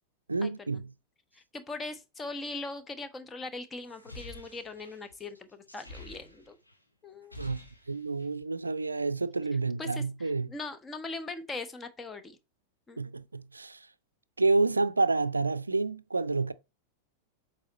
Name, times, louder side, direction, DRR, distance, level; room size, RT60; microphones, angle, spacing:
voice 1, 0.3-0.9 7.4-7.6 7.9-10.5 13.0-13.9 14.4-16.5, right 3 dB, 80° right, 0.4 m, -29 dB
voice 2, 1.3-6.6 7.0-7.4 9.8-12.4 12.9-13.0, left 3 dB, 15° left, 1.1 m, -40 dB
sound 1, 3.8-6.8 7.1-8.4, left 2 dB, 85° left, 1.8 m, -48 dB
7.5 x 4.2 x 4.0 m
figure-of-eight pair, 90°, 0 cm